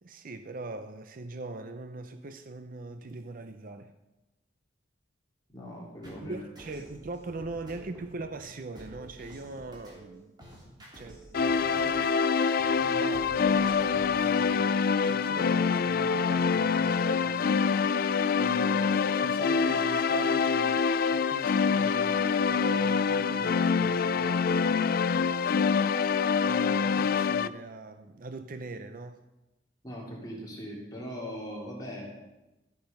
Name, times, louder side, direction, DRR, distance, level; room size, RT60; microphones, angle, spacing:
voice 1, 0.0-3.9 6.2-10.3 11.0-12.1 12.8-24.8 25.3-25.5 26.4-29.2, right 2 dB, 45° right, 0.6 m, -42 dB
voice 2, 5.5-6.4 29.8-32.1, equal, 20° left, 3.4 m, -40 dB
sound 1, 6.0-14.7, right 1 dB, 25° right, 3.1 m, -50 dB
sound 2, 11.3-27.5, left 5 dB, 50° left, 0.4 m, -25 dB
13.0 x 8.8 x 5.3 m
head